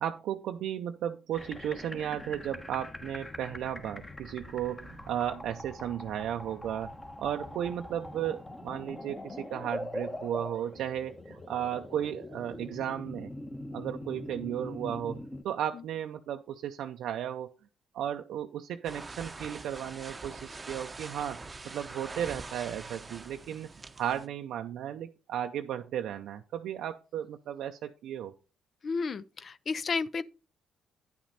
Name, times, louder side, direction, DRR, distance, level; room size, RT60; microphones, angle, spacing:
voice 1, 0.0-13.3 13.7-17.5 17.9-23.7 24.0-28.3, right 10 dB, 80° right, 0.5 m, -35 dB
sound 1, 1.3-15.4, left 1 dB, 20° left, 1.2 m, -42 dB
sound 2, 18.8-24.3, right 3 dB, 25° right, 0.7 m, -44 dB
voice 2, 28.8-30.2, left 4 dB, 50° left, 0.4 m, -32 dB
9.9 x 6.0 x 4.2 m
supercardioid pair, 65°, 0 cm